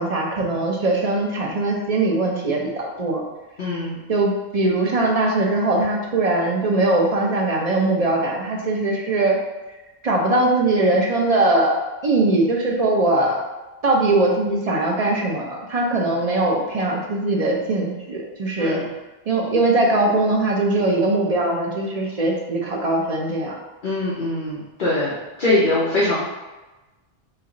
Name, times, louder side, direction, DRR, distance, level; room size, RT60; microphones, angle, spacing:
voice 1, 0.0-3.2 4.1-9.4 10.0-13.4 13.8-18.8 19.3-23.5, right 2 dB, 45° right, -1 dB, 0.5 m, -21 dB
voice 2, 3.6-4.0 18.6-18.8 23.8-25.1 25.4-26.2, left 2 dB, 45° left, -7 dB, 0.9 m, -22 dB
3.3 x 3.0 x 3.7 m, 1.1 s
omnidirectional pair, 1.2 m